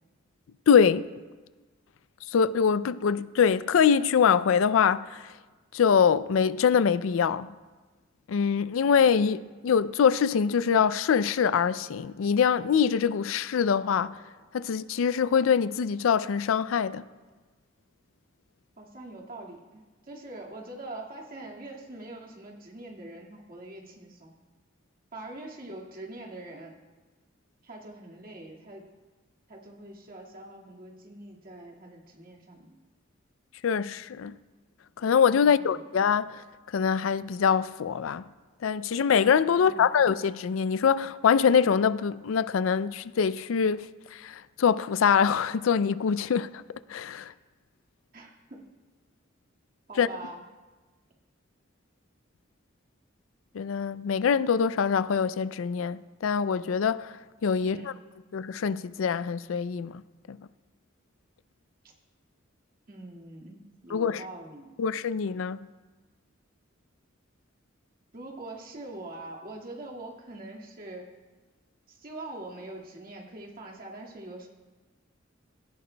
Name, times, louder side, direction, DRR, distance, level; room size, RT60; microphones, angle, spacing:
voice 1, 0.7-1.1 2.3-5.2 5.7-7.5 8.3-14.2 14.5-17.0 33.6-34.3 35.0-36.4 36.7-38.2 38.6-43.8 44.1-46.6 46.9-47.3 50.0-50.1 53.5-57.1 57.4-57.8 58.3-60.0 60.3-60.4 63.9-64.2 64.8-65.6, left 7 dB, 85° left, 0.4 m, -24 dB
voice 2, 18.8-24.3 25.1-26.7 27.6-28.8 29.5-32.7 35.4-35.9 39.5-40.0 48.1-48.6 49.9-50.4 57.6-58.0 62.9-64.7 68.1-71.1 71.9-74.5, right 2 dB, 45° right, 1.9 m, -43 dB
17.5 x 16.0 x 2.2 m
head